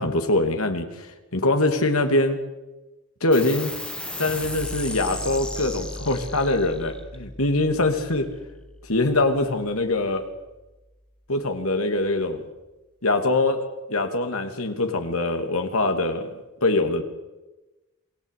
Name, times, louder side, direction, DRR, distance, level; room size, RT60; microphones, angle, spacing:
voice 1, 0.0-2.4 3.2-3.7 4.2-8.3 8.8-10.2 11.3-12.4 13.0-17.0, left 2 dB, 80° left, 6 dB, 2.9 m, -23 dB
sound 1, 3.3-10.2, left 1 dB, 5° left, 1.9 m, -36 dB
28.0 x 19.0 x 8.5 m, 1.1 s
head